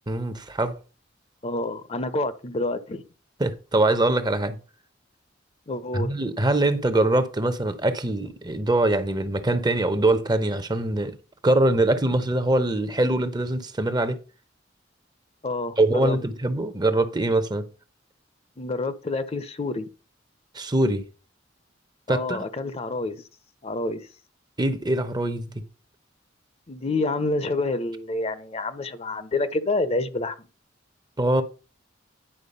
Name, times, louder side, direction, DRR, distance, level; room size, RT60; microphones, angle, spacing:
voice 1, 0.1-0.8 3.4-4.6 5.9-11.2 11.4-14.2 15.8-17.7 20.5-21.1 22.1-22.5 24.6-25.6 31.2-31.4, right 2 dB, 20° right, 0.8 m, -23 dB
voice 2, 1.4-3.0 5.7-6.1 15.4-16.2 18.6-19.9 22.1-23.2 23.6-24.1 26.7-30.5, left 2 dB, 35° left, 0.7 m, -28 dB
10.0 x 4.5 x 5.4 m
head